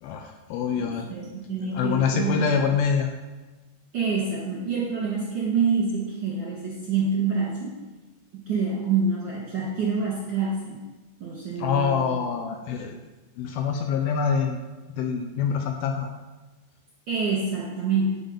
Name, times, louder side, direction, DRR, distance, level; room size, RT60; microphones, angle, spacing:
voice 1, 0.0-1.3 1.7-3.1 11.6-12.9 13.4-14.6 15.0-16.1, left 6 dB, 85° left, 3 dB, 2.2 m, -25 dB
voice 2, 0.7-2.6 3.9-7.8 8.3-10.9 11.2-12.1 17.1-18.2, right 4 dB, 55° right, -6 dB, 1.3 m, -27 dB
11.0 x 4.1 x 5.2 m, 1.2 s
omnidirectional pair, 4.9 m